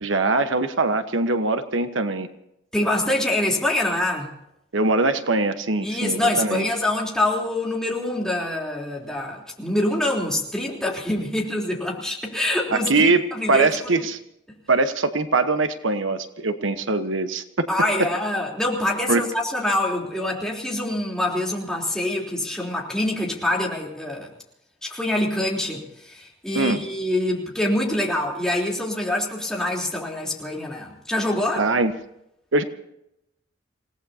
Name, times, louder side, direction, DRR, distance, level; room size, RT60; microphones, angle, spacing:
voice 1, 0.0-2.3 4.7-6.6 12.7-14.2 14.7-17.7 19.1-19.2 26.5-26.8 31.6-31.9 32.5-32.6, right 3 dB, 80° right, 9 dB, 1.2 m, -22 dB
voice 2, 2.7-4.3 5.8-14.0 17.7-24.3 24.8-31.7, left 1 dB, 5° left, -3 dB, 3.6 m, -25 dB
28.5 x 18.0 x 2.8 m, 0.80 s
head